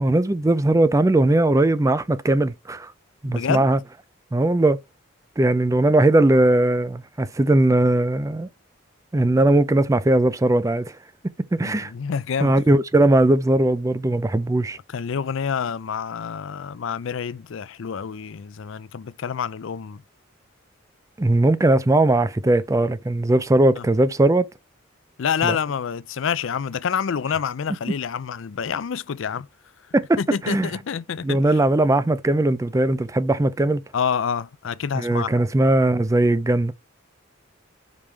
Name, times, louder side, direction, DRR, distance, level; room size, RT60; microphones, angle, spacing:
voice 1, 0.0-2.9 3.2-3.8 4.3-4.8 5.4-8.5 9.1-10.9 11.5-11.9 12.4-14.8 21.2-24.5 25.4-25.6 29.9-30.2 30.4-30.7 31.2-33.8 35.0-36.7, right 2 dB, 15° right, 0.4 m, -19 dB
voice 2, 3.2-3.7 11.6-12.6 14.9-20.0 23.8-23.9 25.2-29.5 30.2-31.6 33.9-35.4, left 7 dB, 65° left, 0.4 m, -27 dB
5.4 x 5.0 x 4.4 m
head